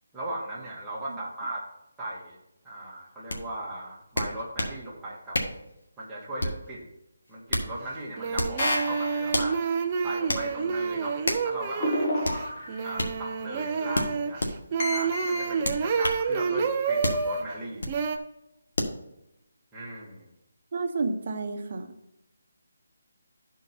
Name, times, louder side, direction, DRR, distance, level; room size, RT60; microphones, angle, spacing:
voice 1, 0.1-1.6 2.0-2.4 2.6-5.5 6.0-6.9 7.3-9.6 10.0-11.2 11.4-12.4 12.8-14.4 14.9-17.8 19.7-20.3, right 1 dB, 5° right, -8 dB, 1.6 m, -37 dB
sound 1, 3.3-3.4 4.2-4.8 5.3-5.6 6.4-6.7 7.3-7.7 8.3-8.6 9.3-9.5 10.3-10.5 11.2-11.5 12.2-12.4 13.0-13.1 13.9-14.5 15.6-16.2 17.0-17.2 17.8-18.0 18.8-19.0, left 1 dB, 90° left, 1.6 m, -29 dB
sound 2, 7.7-7.8 8.2-17.4 17.9-18.2, right 5 dB, 20° right, 0.5 m, -29 dB
sound 3, 8.6-9.6 11.8-13.0 14.8-15.5, left 1 dB, 30° left, 1.6 m, -30 dB
voice 2, 20.7-21.9, right 3 dB, 40° right, 4 dB, 1.0 m, -30 dB
12.0 x 4.6 x 4.2 m, 0.87 s
hypercardioid pair, 170°, 0 cm